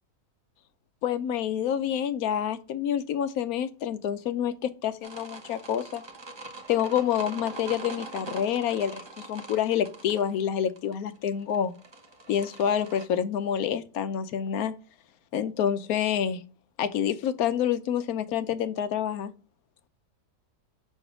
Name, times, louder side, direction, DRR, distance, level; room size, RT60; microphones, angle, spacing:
voice 1, 1.0-6.0 6.7-9.0 9.3-11.7 12.3-14.7 15.3-16.4 16.8-19.3, left 9 dB, 70° left, 1.1 m, -27 dB
sound 1, 5.0-13.1, right 3 dB, 30° right, 0.5 m, -42 dB
6.3 x 3.3 x 4.9 m
omnidirectional pair, 1.7 m